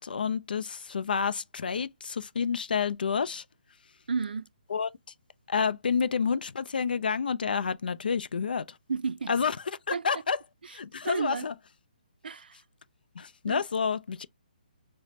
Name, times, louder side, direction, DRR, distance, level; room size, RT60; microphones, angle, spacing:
voice 1, 0.0-3.4 4.7-4.9 5.5-8.8 9.3-9.6 9.9-10.4 10.7-11.5 13.2-14.3, left 6 dB, 80° left, 0.4 m, -29 dB
voice 2, 4.1-4.4 8.9-9.3 9.9-10.1 11.0-11.5 12.2-12.6 13.5-13.6, right 5 dB, 90° right, 0.3 m, -31 dB
5.0 x 2.1 x 2.7 m
hypercardioid pair, 175°, 5 cm